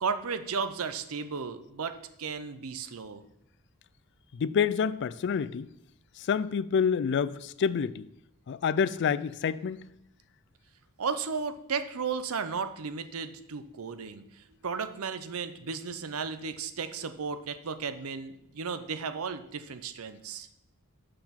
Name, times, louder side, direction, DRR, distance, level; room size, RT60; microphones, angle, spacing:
voice 1, 0.0-3.2 11.0-20.5, right 5 dB, 70° right, 0.6 m, -34 dB
voice 2, 4.3-5.7 6.2-8.1 8.5-9.9, left 6 dB, 55° left, 0.3 m, -28 dB
6.7 x 5.7 x 5.8 m
head